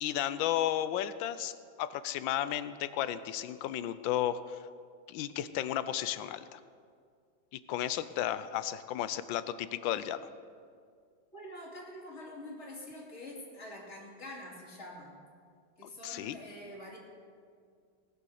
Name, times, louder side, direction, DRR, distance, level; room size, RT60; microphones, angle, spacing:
voice 1, 0.0-1.5 1.8-4.6 5.1-6.6 7.7-10.3 15.8-16.4, left 11 dB, 80° left, 14 dB, 1.3 m, -33 dB
voice 2, 11.3-15.2 15.8-17.0, left 1 dB, 35° left, -2 dB, 2.6 m, -46 dB
19.5 x 7.0 x 6.5 m, 2.2 s
omnidirectional pair, 2.1 m